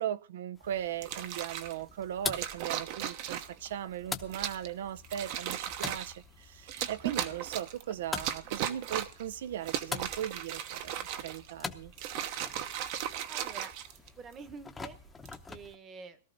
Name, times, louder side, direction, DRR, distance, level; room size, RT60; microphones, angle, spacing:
voice 1, 0.0-11.9, right 10 dB, 70° right, 0.6 m, -38 dB
sound 1, 0.5-15.8, left 4 dB, 10° left, 0.8 m, -45 dB
sound 2, 1.0-1.8 2.3-3.7 4.3-4.7 5.0-6.2 6.7-7.8 8.2-9.2 9.6-11.5 11.9-14.3 15.1-15.4, right 10 dB, 45° right, 1.0 m, -36 dB
voice 2, 13.3-15.0 15.5-16.2, right 5 dB, 20° right, 1.1 m, -48 dB
17.5 x 13.0 x 3.9 m
supercardioid pair, 160°, 0 cm